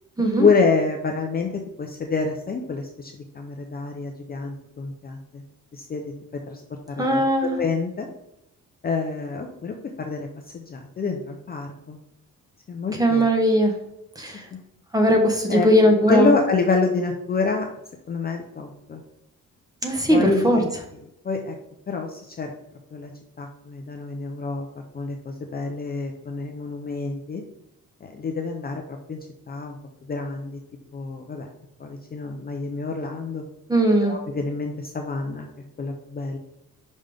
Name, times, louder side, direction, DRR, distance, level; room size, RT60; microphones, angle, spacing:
voice 1, 0.4-1.5 1.8-5.4 5.7-6.1 6.5-6.6 6.9-7.2 7.5-8.1 8.8-10.3 10.5-12.0 12.7-13.2 15.5-15.7 16.1-17.7 18.1-19.0 20.1-20.7 21.2-21.5 21.9-22.5 22.9-23.1 23.4-24.7 24.9-27.4 28.0-28.8 29.1-29.2 29.5-29.8 30.1-30.6 30.9-31.5 31.8-33.4 34.0-35.5 35.8-36.4, left 4 dB, 30° left, 2 dB, 0.6 m, -27 dB
voice 2, 7.0-7.5 13.0-13.7 14.2-14.4 14.9-16.3 19.8-20.6 33.7-34.1, equal, 10° right, 2 dB, 1.0 m, -19 dB
5.5 x 5.3 x 3.4 m, 0.82 s
cardioid pair, 160°, 33 cm